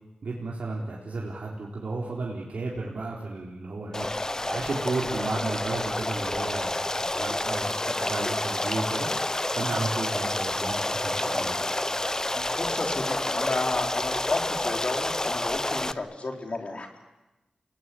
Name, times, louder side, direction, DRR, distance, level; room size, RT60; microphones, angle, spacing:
voice 1, 0.2-4.1 4.4-9.2 9.5-11.6, right 3 dB, 75° right, -3 dB, 4.0 m, -33 dB
Stream, 3.9-15.9, left 1 dB, 25° left, 0.8 m, -29 dB
voice 2, 12.3-16.9, left 2 dB, 55° left, 3 dB, 4.2 m, -32 dB
29.0 x 19.5 x 8.7 m, 1.0 s
cardioid pair, 55°, 2 cm